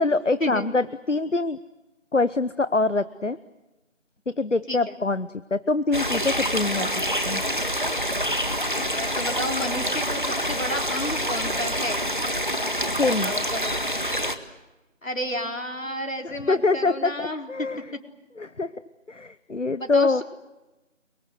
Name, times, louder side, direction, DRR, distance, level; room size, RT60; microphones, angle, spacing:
voice 1, 0.0-1.6 2.1-3.4 4.3-6.9 7.3-7.4 13.0-13.3 16.2-17.8 18.4-18.7 19.1-20.2, left 3 dB, 70° left, 15 dB, 1.0 m, -24 dB
sound 1, 5.9-14.3, equal, 40° right, 1.7 m, -26 dB
voice 2, 8.9-12.0 13.2-13.8 15.0-18.0 19.8-20.2, left 1 dB, 85° left, 3 dB, 4.4 m, -31 dB
30.0 x 23.5 x 7.9 m, 1.0 s
figure-of-eight pair, 175°, 38 cm